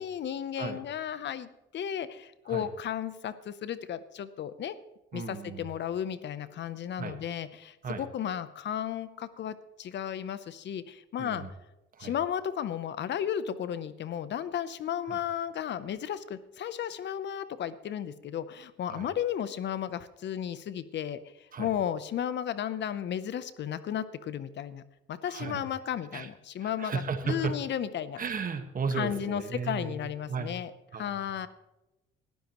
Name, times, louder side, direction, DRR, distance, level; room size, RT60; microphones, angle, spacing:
voice 1, 0.0-4.8 5.1-11.5 12.0-21.2 21.6-24.8 25.1-28.2 28.9-31.5, left 9 dB, 60° left, 14 dB, 0.8 m, -34 dB
voice 2, 5.1-5.7 7.0-7.2 7.8-8.0 11.2-11.5 11.9-12.1 15.1-15.2 18.9-19.1 21.5-21.7 25.3-25.6 26.1-26.3 26.6-27.6 28.2-30.0 30.3-30.6 30.9-31.3, right 5 dB, 45° right, 7 dB, 1.6 m, -35 dB
19.0 x 12.5 x 3.1 m, 0.98 s
cardioid pair, 90°, 21 cm